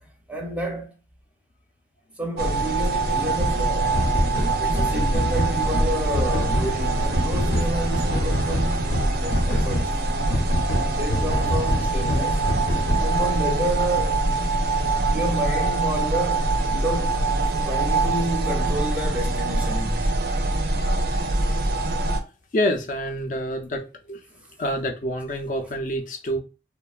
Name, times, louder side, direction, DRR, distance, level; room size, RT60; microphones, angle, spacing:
voice 1, 0.3-1.0 2.2-4.0 4.6-8.9 9.2-9.9 10.9-12.5 13.0-14.2 15.1-17.3 17.6-20.1, equal, 10° right, 0.5 m, -30 dB
Nighttime recording of my AC (Scary), 2.4-22.2, right 2 dB, 60° right, 0.4 m, -24 dB
sound 1, 3.4-3.5 3.9-9.9 10.3-13.3, equal, 85° left, 0.7 m, -26 dB
voice 2, 22.5-24.2 24.6-26.4, equal, 45° left, 0.4 m, -27 dB
2.9 x 2.1 x 2.3 m
head